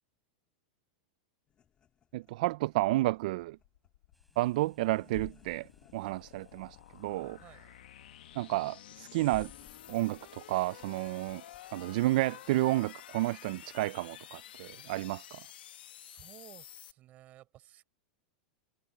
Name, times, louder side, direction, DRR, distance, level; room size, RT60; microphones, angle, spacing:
sound 1, 1.5-11.7, left 8 dB, 20° left, 1.7 m, -58 dB
voice 1, 2.1-3.6 4.4-7.4 8.4-9.5 9.9-11.4 11.7-15.4, right 18 dB, 55° right, 0.3 m, -31 dB
sound 2, 3.4-16.9, left 12 dB, 85° left, 1.4 m, -51 dB
sound 3, 4.1-13.1, equal, ahead, 5.0 m, -73 dB
voice 2, 16.0-17.8, right 14 dB, 30° right, 5.3 m, -55 dB
supercardioid pair, 160°, 5 cm